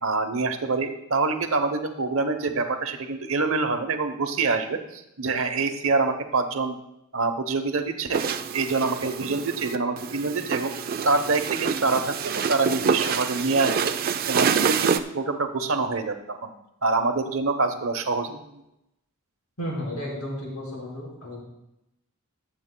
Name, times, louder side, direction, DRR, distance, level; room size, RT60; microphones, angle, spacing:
voice 1, 0.0-6.7 7.1-8.2 8.5-10.7 11.0-13.9 14.3-16.5 16.8-18.6, right 3 dB, 60° right, 7 dB, 0.9 m, -26 dB
sound 1, 8.1-15.0, right 6 dB, 40° right, 0.4 m, -27 dB
voice 2, 19.6-21.4, equal, 70° left, -4 dB, 4.6 m, -33 dB
21.5 x 7.6 x 2.2 m, 0.87 s
head